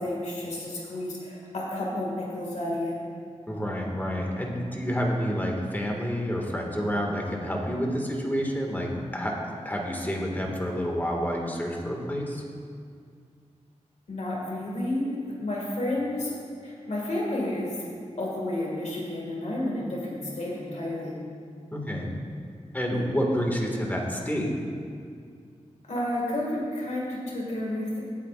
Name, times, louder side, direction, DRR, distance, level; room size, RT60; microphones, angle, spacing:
voice 1, 0.0-3.0 14.1-16.3 16.6-17.8 18.2-21.2 25.9-28.0, left 1 dB, 70° left, -3 dB, 2.0 m, -31 dB
voice 2, 3.5-12.4 21.7-22.1 22.7-24.5, equal, 15° left, 0 dB, 1.9 m, -29 dB
17.5 x 8.6 x 2.5 m, 2.2 s
wide cardioid pair, 65°, 12 cm